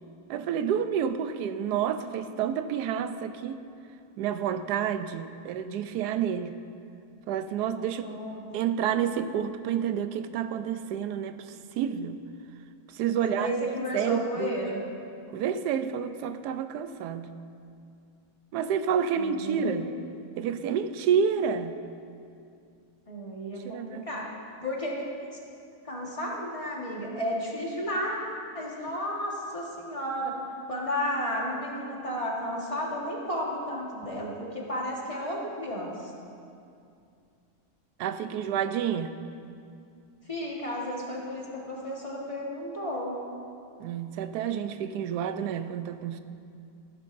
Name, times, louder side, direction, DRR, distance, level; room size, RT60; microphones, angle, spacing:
voice 1, 0.3-3.6 4.2-6.6 7.3-8.0 8.5-12.2 12.9-13.5 13.9-14.6 15.3-17.3 18.5-19.9 20.4-21.8 23.6-24.1 38.0-39.2 43.8-46.2, right 8 dB, 90° right, 10 dB, 1.1 m, -29 dB
voice 2, 7.9-8.4 13.1-14.8 19.1-19.8 23.1-24.3 24.6-25.0 25.8-28.2 28.5-30.4 30.7-36.1 40.2-43.2, equal, 20° left, -4 dB, 1.5 m, -33 dB
14.0 x 13.0 x 2.6 m, 2.5 s
omnidirectional pair, 1.7 m